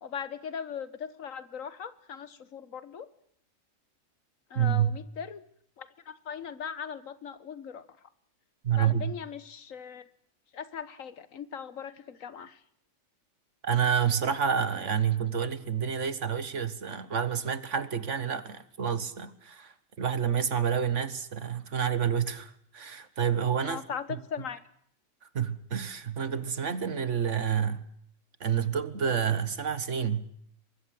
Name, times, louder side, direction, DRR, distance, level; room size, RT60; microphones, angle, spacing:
voice 1, 0.0-3.1 4.5-5.4 5.8-7.9 8.8-10.1 10.5-12.6 23.6-24.6, left 7 dB, 75° left, 1.6 m, -39 dB
voice 2, 4.5-5.0 8.6-9.2 13.6-23.8 24.1-24.2 25.3-27.9 28.4-30.3, right 8 dB, 60° right, 1.7 m, -29 dB
24.0 x 21.0 x 7.8 m
omnidirectional pair, 1.4 m